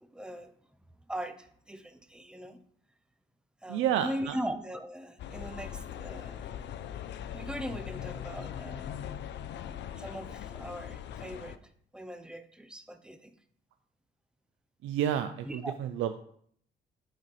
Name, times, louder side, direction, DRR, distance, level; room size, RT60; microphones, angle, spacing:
voice 1, 0.0-0.5 1.1-2.6 3.6-6.5 7.3-9.1 10.0-11.6 11.9-13.4 15.4-15.7, equal, 5° right, 9 dB, 0.6 m, -40 dB
voice 2, 3.7-4.4 14.8-16.2, right 10 dB, 85° right, 9 dB, 0.4 m, -30 dB
sound 1, 5.2-11.6, left 9 dB, 65° left, 0.4 m, -40 dB
9.0 x 4.1 x 3.1 m, 0.63 s
cardioid pair, 90°, 20 cm